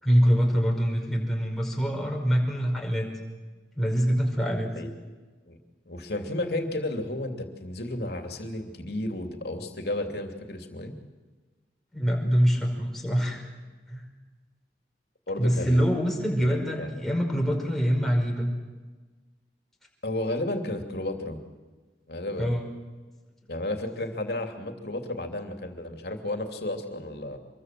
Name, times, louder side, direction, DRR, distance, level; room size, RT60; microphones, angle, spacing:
voice 1, 0.0-3.1 3.8-4.7 11.9-13.4 13.9-14.0 15.4-18.5 22.4-22.7, equal, ahead, 0 dB, 5.1 m, -24 dB
voice 2, 5.8-11.0 15.3-15.9 16.4-16.9 20.0-21.4 22.1-22.6 23.5-27.4, left 1 dB, 65° left, 5 dB, 3.0 m, -33 dB
26.0 x 22.5 x 7.7 m, 1.3 s
head